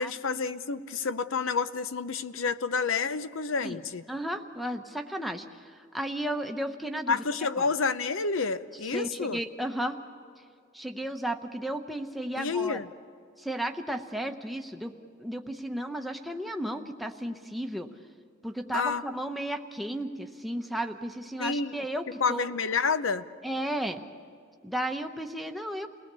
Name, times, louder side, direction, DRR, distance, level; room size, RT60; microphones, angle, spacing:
voice 1, 0.0-4.0 7.1-9.4 12.4-12.9 18.7-19.0 21.4-21.8 22.2-23.2, left 5 dB, 75° left, 13 dB, 0.7 m, -29 dB
voice 2, 4.1-7.2 7.6-7.7 8.9-10.0 10.7-12.8 13.4-14.9 15.2-17.9 18.4-22.4 23.4-24.0 24.6-25.9, right 1 dB, ahead, 4 dB, 0.9 m, -34 dB
29.0 x 19.0 x 6.9 m, 2.3 s
head